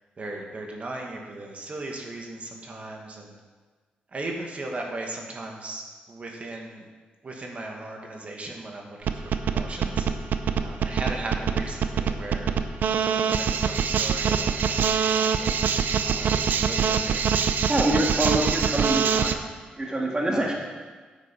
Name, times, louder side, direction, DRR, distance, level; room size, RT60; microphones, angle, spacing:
voice 1, 0.2-3.3 4.1-6.9 7.2-10.1 10.6-12.5 13.4-17.2 17.8-18.1 18.3-18.5 20.3-20.5, right 2 dB, 45° right, 1 dB, 2.0 m, -37 dB
sound 1, 9.1-19.3, right 7 dB, 70° right, 0.6 m, -24 dB
voice 2, 17.7-19.4 19.8-20.5, right 1 dB, 25° right, -2 dB, 2.1 m, -25 dB
10.0 x 8.2 x 5.5 m, 1.4 s
cardioid pair, 85°, 3 cm